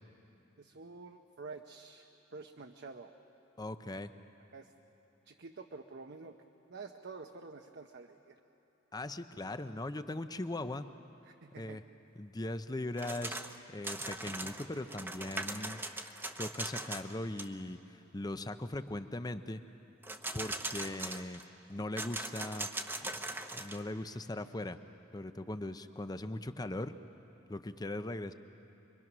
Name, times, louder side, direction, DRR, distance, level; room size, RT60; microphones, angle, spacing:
voice 1, 0.6-3.1 4.5-4.7 5.3-6.3 6.7-8.4 11.3-11.8, right 4 dB, 55° right, 4 dB, 0.8 m, -48 dB
voice 2, 3.6-4.1 8.9-10.9 11.6-11.8 12.2-15.8 16.4-19.6 20.3-21.4 21.7-22.7 23.5-24.8 25.1-26.9 27.5-28.3, left 1 dB, 20° left, 10 dB, 0.6 m, -39 dB
sound 1, 13.0-13.6 13.8-17.1 17.4-17.5 20.0-21.4 22.0-23.8, right 2 dB, 10° right, 0.9 m, -40 dB
26.5 x 23.0 x 6.1 m, 2.9 s
head